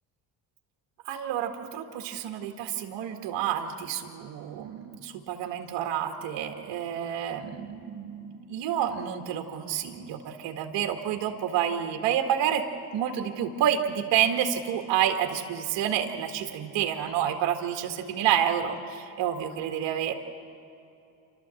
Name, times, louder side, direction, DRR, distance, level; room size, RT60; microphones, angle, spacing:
voice 1, 1.1-12.6 12.9-20.1, right 9 dB, 65° right, 4 dB, 1.9 m, -29 dB
28.0 x 13.0 x 7.7 m, 2.8 s
supercardioid pair, 75°, 46 cm